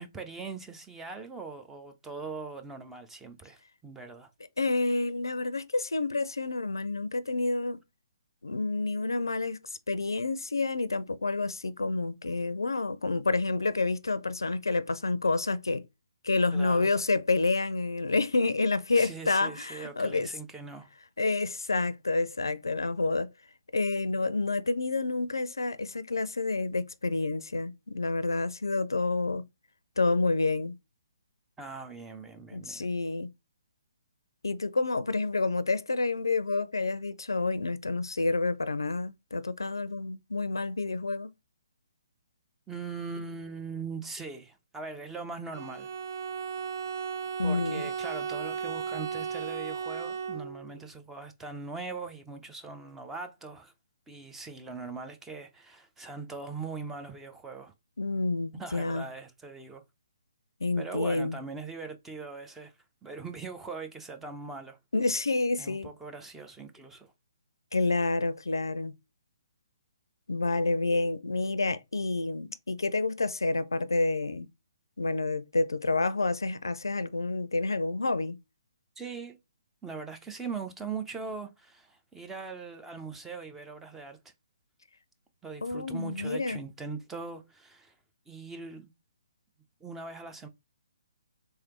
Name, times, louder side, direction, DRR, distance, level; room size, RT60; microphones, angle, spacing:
voice 1, 0.0-4.3 16.5-16.9 19.0-20.9 31.6-32.8 42.7-45.9 47.4-53.7 54.1-57.7 58.5-59.8 60.8-62.7 63.0-64.8 65.6-67.1 79.0-79.4 79.8-84.3 85.4-87.9 88.3-88.9 89.8-90.5, right 4 dB, 10° right, 0.5 m, -41 dB
voice 2, 4.6-7.8 8.4-9.6 9.9-15.8 16.2-20.3 21.2-23.3 23.7-29.4 30.0-30.7 32.5-33.3 34.4-41.3 47.4-47.9 58.0-59.1 60.6-61.4 64.9-65.9 67.7-68.9 70.3-74.5 75.0-78.4 85.6-86.6, left 3 dB, 80° left, 0.5 m, -29 dB
Bowed string instrument, 45.5-50.8, right 6 dB, 60° right, 0.7 m, -35 dB
3.5 x 3.3 x 2.9 m
figure-of-eight pair, 135°, 2 cm